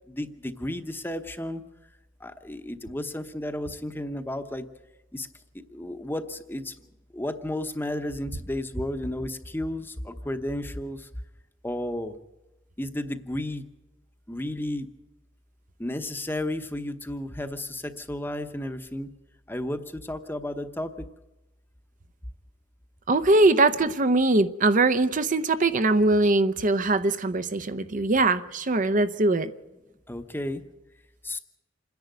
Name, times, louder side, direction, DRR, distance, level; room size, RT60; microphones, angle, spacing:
voice 1, 0.1-1.6 2.2-4.7 5.1-5.3 5.7-6.7 7.1-11.1 11.6-12.2 12.8-13.6 14.3-14.9 15.8-19.1 19.5-21.1 30.1-30.6 31.2-31.4, left 1 dB, 10° left, 0.9 m, -33 dB
voice 2, 23.1-29.5, right 2 dB, 40° right, 0.7 m, -22 dB
27.0 x 10.5 x 9.2 m
head